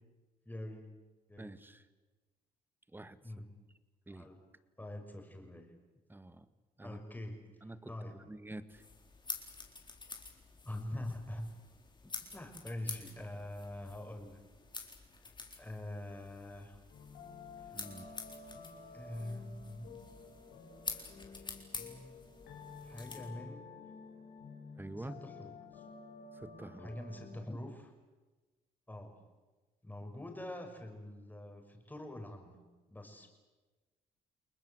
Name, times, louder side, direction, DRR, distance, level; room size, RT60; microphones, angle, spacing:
voice 1, 0.5-1.0 1.3-1.5 3.2-3.6 4.1-4.4 4.8-5.7 6.8-7.5 7.9-8.2 10.6-11.5 12.0-14.4 15.2-16.8 18.9-20.0 21.7-22.2 22.5-23.7 25.0-25.8 26.8-27.9 28.9-29.2 29.8-32.6 32.9-33.3, left 1 dB, 10° left, 4 dB, 5.8 m, -45 dB
voice 2, 1.4-1.8 2.9-3.2 4.1-4.3 6.1-6.5 6.8-7.0 7.6-8.8 17.7-18.1 24.8-25.1 26.3-27.0, right 2 dB, 10° right, 12 dB, 1.7 m, -47 dB
sound 1, 8.7-23.3, left 4 dB, 30° left, 4.2 m, -48 dB
sound 2, 16.9-27.4, left 4 dB, 80° left, 4.2 m, -52 dB
30.0 x 20.0 x 8.0 m, 1.2 s
supercardioid pair, 75°, 17 cm